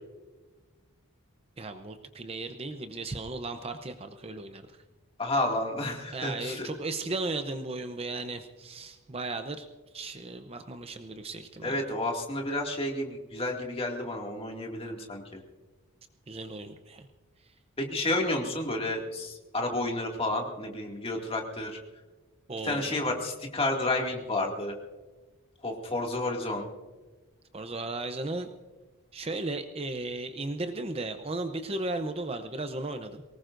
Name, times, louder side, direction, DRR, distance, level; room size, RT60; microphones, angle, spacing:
voice 1, 1.6-4.8 6.1-9.7 9.9-11.8 16.3-17.1 22.5-23.0 27.5-28.5 29.1-33.2, right 2 dB, 25° right, 8 dB, 0.7 m, -35 dB
voice 2, 5.2-6.7 11.6-15.4 17.8-21.8 22.6-24.7 25.6-26.7, left 2 dB, 25° left, 1 dB, 2.2 m, -31 dB
23.5 x 19.5 x 2.6 m, 1.3 s
head